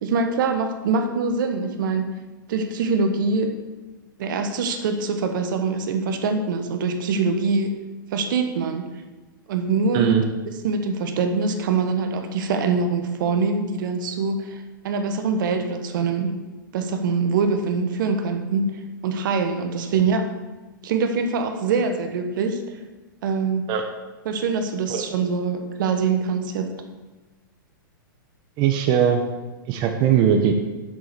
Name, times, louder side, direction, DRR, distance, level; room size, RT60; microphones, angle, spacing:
voice 1, 0.0-2.1 2.5-3.5 4.2-7.7 8.1-8.9 9.5-10.2 10.6-16.3 16.7-20.2 20.8-22.6 23.2-23.6 24.2-26.7, right 4 dB, 65° right, 6 dB, 1.4 m, -24 dB
voice 2, 28.6-29.2 29.7-30.5, right 8 dB, 40° right, 4 dB, 1.1 m, -19 dB
7.7 x 7.0 x 6.9 m, 1.2 s
hypercardioid pair, 120°, 12 cm